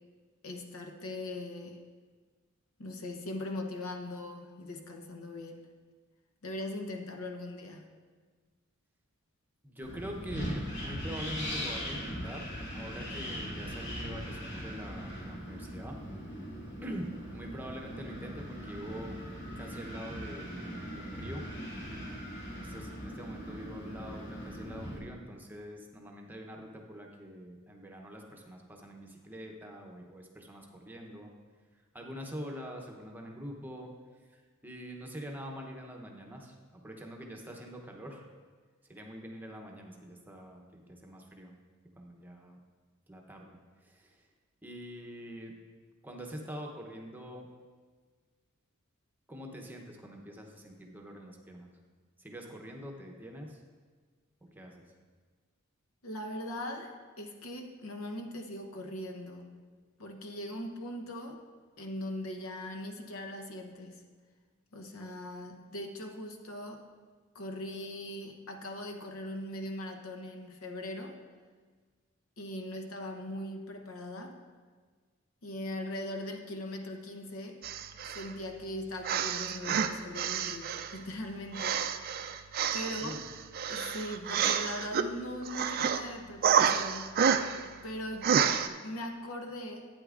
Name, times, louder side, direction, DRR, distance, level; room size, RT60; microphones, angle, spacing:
voice 1, 0.4-1.8 2.8-5.7 6.4-8.0 56.0-59.6 60.0-61.4 61.8-64.0 64.7-66.9 67.3-71.2 72.4-74.4 75.4-77.6 78.0-82.4 82.7-83.2 83.7-87.2 87.8-88.4 88.8-89.9, left 1 dB, 85° left, 4 dB, 0.9 m, -40 dB
voice 2, 9.6-16.0 16.8-19.2 19.5-21.4 22.5-31.3 31.9-33.9 34.3-38.3 38.8-41.5 42.0-42.6 43.1-44.3 44.6-45.5 46.0-47.5 49.3-51.7 52.2-53.6 54.5-54.9 82.8-83.2, equal, 10° right, 1 dB, 0.8 m, -44 dB
Wind, 9.8-25.0, equal, 55° left, 2.5 m, -40 dB
sound 1, 77.6-78.3 79.0-81.0 81.5-85.1 85.4-86.0 86.4-87.7 88.2-88.7, right 7 dB, 45° right, 0.3 m, -29 dB
11.5 x 9.0 x 2.5 m, 1.5 s
head